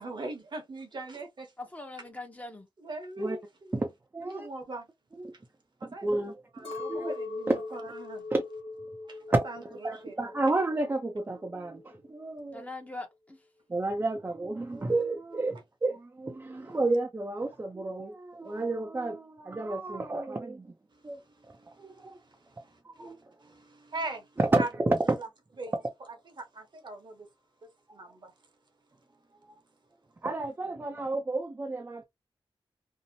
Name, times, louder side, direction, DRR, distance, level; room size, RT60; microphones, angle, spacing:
voice 1, 0.0-1.5 2.8-3.8 4.3-4.9 5.8-6.2 6.5-8.3 9.1-10.1 18.5-18.6 21.4-22.2 22.6-23.1 23.4-24.3 24.6-24.7 25.2-25.3 25.6-25.7 26.4-27.3 27.9-28.3, right 2 dB, 55° right, 0.9 m, -41 dB
voice 2, 1.6-2.7 12.5-13.4, left 2 dB, 15° left, 0.7 m, -42 dB
voice 3, 3.7-4.5 5.2-5.3 5.8-7.1 7.5-7.6 8.3-8.4 9.3-9.4 9.8-12.7 13.7-20.7 21.0-21.2 21.8-22.2 22.8-23.2 24.4-25.2 25.6-25.8 28.0-28.1 30.2-32.0, right 2 dB, 25° right, 0.4 m, -31 dB
Chink clink, 6.6-11.0 11.3-12.1, left 3 dB, 85° left, 0.7 m, -40 dB
2.7 x 2.0 x 2.6 m
wide cardioid pair, 95°, 9 cm